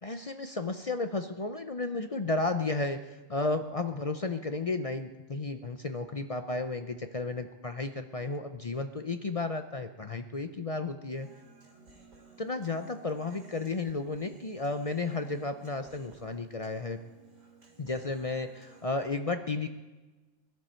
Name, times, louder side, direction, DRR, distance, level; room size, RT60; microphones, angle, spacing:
voice 1, 0.0-11.3 12.4-17.0 17.8-19.7, left 3 dB, 40° left, 8 dB, 0.5 m, -33 dB
Human voice, 11.1-19.1, right 3 dB, 70° right, 3.3 m, -57 dB
22.5 x 11.5 x 4.4 m, 1.2 s
omnidirectional pair, 1.4 m